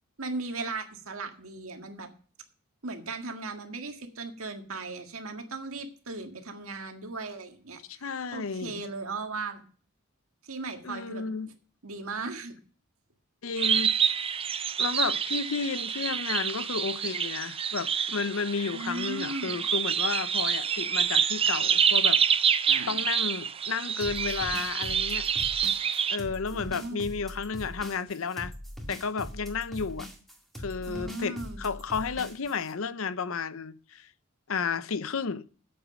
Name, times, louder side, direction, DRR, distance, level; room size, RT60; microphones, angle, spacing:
voice 1, 0.2-2.1 2.8-8.0 8.3-9.6 10.4-11.2 11.8-12.5 18.7-19.6 22.7-23.0 26.5-27.0 30.8-31.6, right 3 dB, 70° right, 1.8 m, -37 dB
voice 2, 7.9-8.8 10.8-11.5 13.4-13.9 14.8-22.2 22.9-25.7 26.1-28.5 28.9-30.1 30.6-34.1 34.5-35.5, left 5 dB, 65° left, 0.6 m, -32 dB
sound 1, 13.6-26.2, right 7 dB, 25° right, 0.5 m, -27 dB
sound 2, 24.0-32.7, equal, ahead, 1.9 m, -41 dB
9.1 x 8.1 x 6.2 m
head